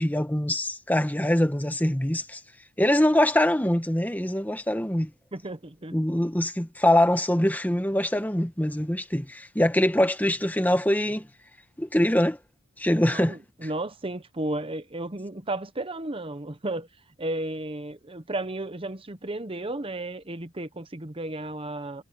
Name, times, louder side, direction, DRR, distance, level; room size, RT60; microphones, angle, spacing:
voice 1, 0.0-2.4 2.8-5.1 5.9-11.3 11.8-12.4 12.8-13.4, left 1 dB, 10° left, 1.3 m, -23 dB
voice 2, 5.3-5.9 13.0-16.9 17.2-22.0, right 2 dB, 25° right, 1.0 m, -33 dB
head